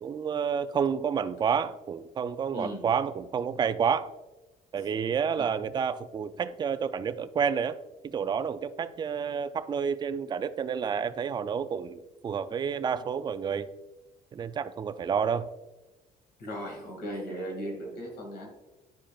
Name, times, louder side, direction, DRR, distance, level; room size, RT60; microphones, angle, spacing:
voice 1, 0.0-4.1 4.7-7.8 8.0-13.7 14.3-15.5, right 7 dB, 25° right, 0.3 m, -29 dB
voice 2, 2.5-2.8 5.4-5.5 16.4-18.5, equal, 75° left, 2.3 m, -37 dB
10.5 x 4.8 x 2.4 m
cardioid pair, 110°, 17 cm